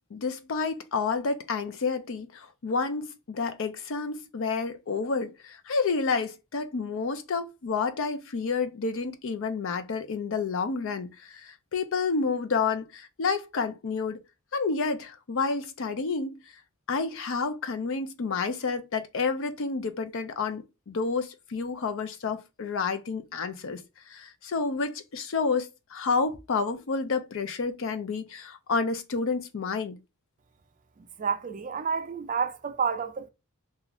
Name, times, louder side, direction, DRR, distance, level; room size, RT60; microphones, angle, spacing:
voice 1, 0.1-14.2 14.5-16.4 16.9-30.0, left 4 dB, 65° left, 0.5 m, -30 dB
voice 2, 31.0-33.3, right 6 dB, 40° right, 0.4 m, -30 dB
2.4 x 2.4 x 2.9 m
head